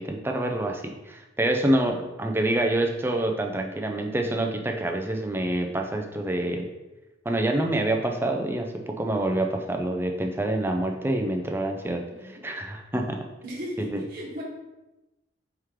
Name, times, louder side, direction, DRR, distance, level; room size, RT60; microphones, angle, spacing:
voice 1, 0.0-6.7 7.3-13.2 13.8-14.0, right 1 dB, 10° right, 3 dB, 0.3 m, -27 dB
voice 2, 12.1-12.4 13.4-14.4, equal, 50° right, -6 dB, 1.1 m, -36 dB
4.5 x 3.1 x 3.6 m, 1.0 s
head